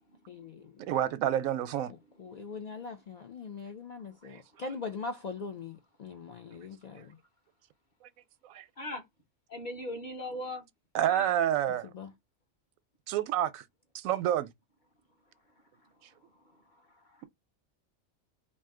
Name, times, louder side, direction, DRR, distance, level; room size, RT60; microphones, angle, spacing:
voice 1, 0.3-0.8 1.9-7.2 11.8-12.1, left 4 dB, 80° left, 0.3 m, -41 dB
voice 2, 0.8-1.9 8.5-8.6 10.9-11.9 13.1-13.6 13.9-14.5, right 11 dB, 90° right, 1.0 m, -28 dB
voice 3, 9.5-10.7 11.1-11.4 16.5-17.3, left 1 dB, 35° left, 1.3 m, -40 dB
3.9 x 2.6 x 3.6 m
omnidirectional pair, 1.4 m